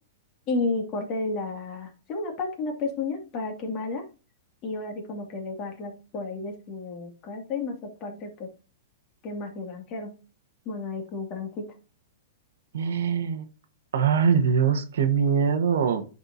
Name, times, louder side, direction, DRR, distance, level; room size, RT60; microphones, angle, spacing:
voice 1, 0.5-4.0 4.6-8.5 9.2-10.1 10.7-11.6, left 3 dB, 35° left, 2 dB, 2.2 m, -32 dB
voice 2, 12.7-13.5 13.9-16.1, right 7 dB, 80° right, 9 dB, 1.1 m, -23 dB
10.5 x 4.3 x 2.7 m, 0.33 s
hypercardioid pair, 145°, 0 cm